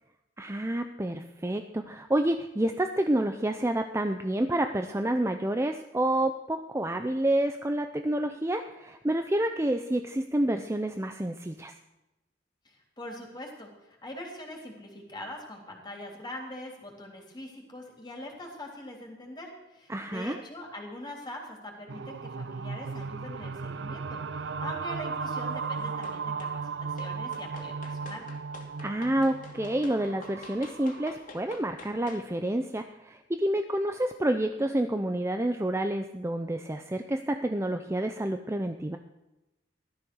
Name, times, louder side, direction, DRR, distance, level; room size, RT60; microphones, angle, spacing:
voice 1, 0.4-11.7 19.9-20.4 28.8-39.0, right 1 dB, 15° right, 6 dB, 0.6 m, -29 dB
voice 2, 12.6-28.3, left 1 dB, 25° left, 0 dB, 3.6 m, -43 dB
sound 1, 21.9-31.1, right 5 dB, 70° right, 0.5 m, -36 dB
sound 2, 26.0-26.6 27.0-32.3, left 3 dB, 45° left, 2.5 m, -48 dB
16.0 x 13.0 x 6.4 m, 0.98 s
head